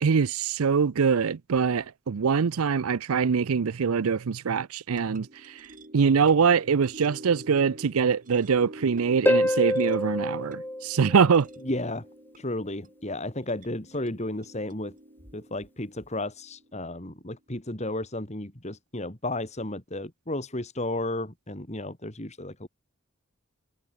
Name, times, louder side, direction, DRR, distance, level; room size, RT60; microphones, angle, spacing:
voice 1, 0.0-5.7 5.9-11.5, right 6 dB, 85° right, 0.5 m, -23 dB
sound 1, 4.9-17.3, right 1 dB, 40° right, 4.2 m, -49 dB
Harp, 9.3-11.8 15.3-15.4, left 1 dB, 10° left, 2.1 m, -26 dB
voice 2, 11.6-12.1 12.4-15.0 15.3-22.7, left 1 dB, 30° left, 3.2 m, -33 dB
head